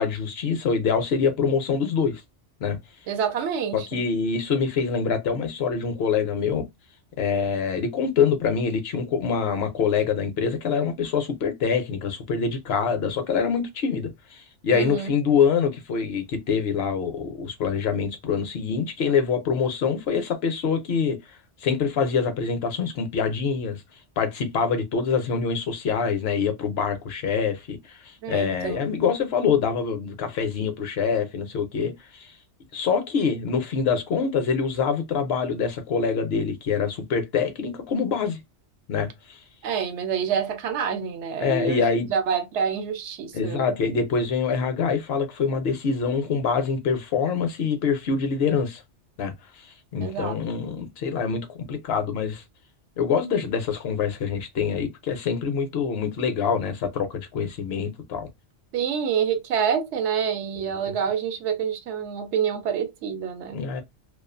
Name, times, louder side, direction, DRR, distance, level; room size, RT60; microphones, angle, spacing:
voice 1, 0.0-2.2 2.6-2.8 3.7-6.7 7.2-21.2 21.6-23.8 24.2-32.3 32.7-38.4 38.9-39.4 41.4-42.1 43.3-48.8 49.2-49.7 49.9-52.4 53.0-58.3 60.8-60.9 63.5-63.8, left 6 dB, 65° left, 0.7 m, -25 dB
voice 2, 3.1-4.0 14.7-15.1 28.2-28.8 39.6-41.8 42.1-43.8 50.0-50.4 58.7-63.6, right 7 dB, 75° right, 0.9 m, -27 dB
2.3 x 2.3 x 2.4 m
omnidirectional pair, 1.2 m